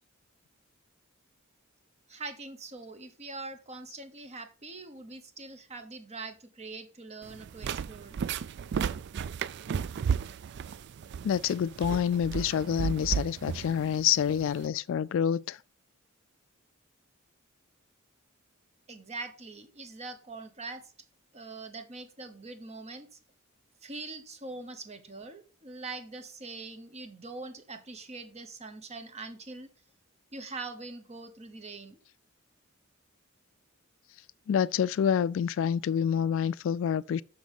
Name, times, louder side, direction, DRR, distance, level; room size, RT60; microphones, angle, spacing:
voice 1, 2.1-8.2 18.9-20.8 21.3-23.1 23.8-29.7 30.3-32.0, right 3 dB, 30° right, 1.1 m, -43 dB
sound 1, 7.2-14.7, right 7 dB, 55° right, 0.3 m, -34 dB
voice 2, 11.2-15.6 34.5-37.2, left 8 dB, 65° left, 0.3 m, -27 dB
6.2 x 6.1 x 5.3 m
head